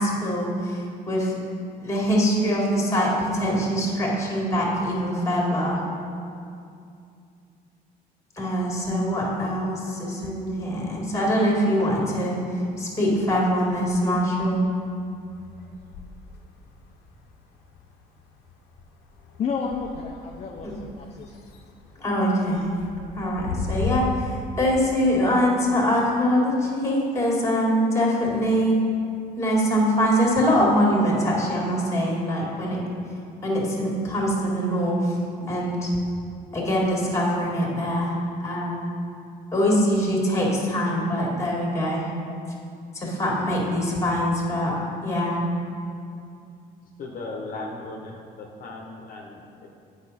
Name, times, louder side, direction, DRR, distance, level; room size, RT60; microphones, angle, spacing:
voice 1, 0.0-1.4 1.8-5.8 8.4-12.4 12.8-14.6 20.6-20.7 22.0-22.7 23.2-24.3 24.6-28.8 29.4-32.8 33.4-35.2 35.5-35.9 36.5-38.9 39.5-42.1 42.9-44.7 45.0-45.4, equal, 15° left, -3 dB, 1.9 m, -23 dB
sound 1, 10.8-12.0 12.3-24.0, left 5 dB, 90° left, 0.8 m, -39 dB
voice 2, 19.4-21.4, left 5 dB, 40° left, 2 dB, 0.5 m, -31 dB
voice 3, 47.0-49.7, left 2 dB, 55° left, -1 dB, 1.0 m, -37 dB
8.3 x 5.4 x 4.1 m, 2.4 s
cardioid pair, 110°, 17 cm